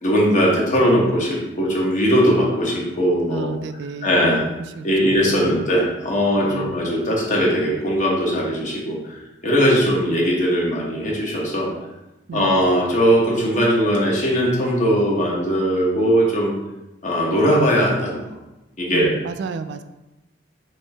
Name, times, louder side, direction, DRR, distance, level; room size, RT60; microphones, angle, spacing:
voice 1, 0.0-3.6 4.0-4.4 4.8-11.7 12.3-16.5 17.0-18.2 18.8-19.2, equal, 45° left, -3 dB, 1.1 m, -19 dB
voice 2, 3.3-4.4 4.8-5.6 6.5-6.7 12.3-12.6 18.9-19.8, right 4 dB, 70° right, 10 dB, 0.3 m, -31 dB
5.3 x 2.7 x 3.4 m, 0.99 s
head